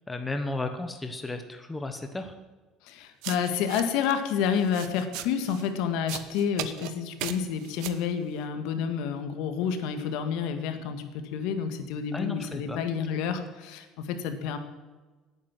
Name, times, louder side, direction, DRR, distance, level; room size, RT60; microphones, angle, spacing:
voice 1, 0.1-2.3 12.1-12.8 13.1-13.2, left 2 dB, 10° left, 6 dB, 1.1 m, -34 dB
voice 2, 2.8-14.6, left 7 dB, 75° left, 8 dB, 1.9 m, -29 dB
sound 1, 3.2-4.1 4.5-5.7 6.1-6.9 7.2-8.0, right 14 dB, 75° right, 1.1 m, -37 dB
18.0 x 9.4 x 7.5 m, 1.3 s
cardioid pair, 180°, 0 cm